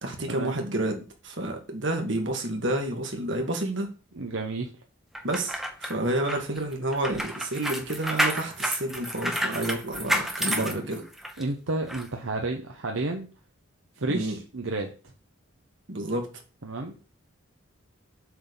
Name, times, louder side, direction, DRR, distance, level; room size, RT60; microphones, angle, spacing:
voice 1, 0.0-3.9 5.2-11.1 14.1-14.4 15.9-16.3, right 1 dB, 60° right, 3 dB, 1.9 m, -30 dB
voice 2, 4.1-4.7 10.4-10.8 11.4-13.3 14.0-14.9 16.6-16.9, right 2 dB, 75° right, 2 dB, 1.0 m, -31 dB
sound 1, 5.1-11.4 11.9-12.0, equal, ahead, 0.8 m, -30 dB
7.8 x 4.1 x 6.9 m, 0.36 s
head